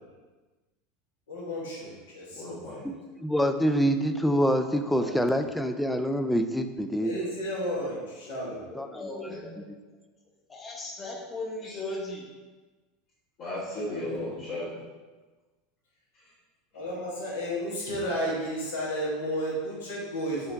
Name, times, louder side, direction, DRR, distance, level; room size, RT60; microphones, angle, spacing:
voice 1, 1.3-2.8 4.9-5.2 7.0-8.6 13.8-14.3 16.7-20.5, equal, 85° left, -6 dB, 1.5 m, -33 dB
voice 2, 2.3-2.9 9.3-9.4 11.6-11.9 13.4-14.8 16.1-16.3, left 1 dB, 50° left, -11 dB, 1.4 m, -36 dB
voice 3, 3.2-7.1 8.8-9.0, equal, 5° left, 7 dB, 0.3 m, -25 dB
voice 4, 8.7-9.6 10.5-12.3, left 2 dB, 25° left, -1 dB, 0.9 m, -37 dB
4.6 x 2.8 x 3.4 m, 1.3 s
hypercardioid pair, 105°, 0 cm